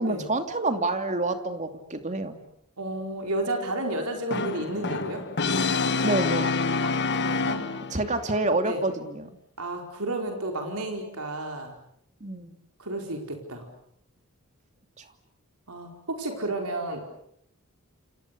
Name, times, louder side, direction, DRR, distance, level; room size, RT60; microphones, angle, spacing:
voice 1, 0.0-2.4 6.0-6.5 7.9-9.3 12.2-12.5 15.0-15.1, right 2 dB, 35° right, 7 dB, 2.8 m, -28 dB
voice 2, 2.8-5.2 6.8-7.7 8.6-8.8 9.6-11.7 12.8-13.6 15.7-17.0, right 2 dB, 90° right, 3 dB, 4.8 m, -32 dB
Brass instrument, 4.3-8.1, left 4 dB, 50° left, 1.5 m, -27 dB
29.0 x 28.0 x 6.9 m, 0.72 s
head